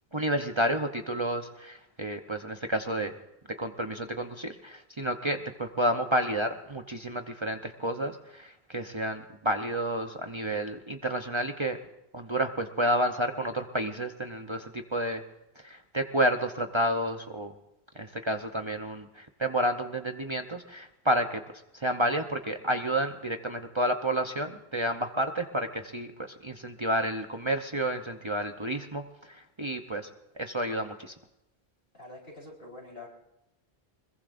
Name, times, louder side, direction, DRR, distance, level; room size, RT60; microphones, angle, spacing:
voice 1, 0.1-3.1 3.6-11.8 12.1-15.2 15.6-17.5 17.9-21.4 21.7-30.1 30.4-31.1, right 1 dB, 30° right, 4 dB, 0.9 m, -30 dB
voice 2, 31.9-33.1, left 2 dB, 65° left, -3 dB, 4.9 m, -45 dB
24.5 x 22.0 x 2.6 m, 0.91 s
omnidirectional pair, 1.1 m